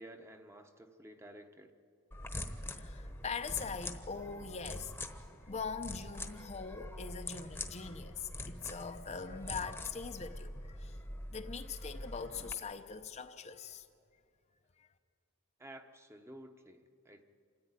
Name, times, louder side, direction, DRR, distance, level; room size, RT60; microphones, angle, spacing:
voice 1, 0.0-1.7 15.6-17.2, right 1 dB, 10° right, 1.0 m, -52 dB
sound 1, 2.1-12.5, left 1 dB, 10° left, 1.1 m, -44 dB
voice 2, 2.4-4.9 5.5-11.0 11.3-13.9 14.8-14.9, left 5 dB, 30° left, 0.7 m, -42 dB
27.0 x 14.0 x 9.8 m
head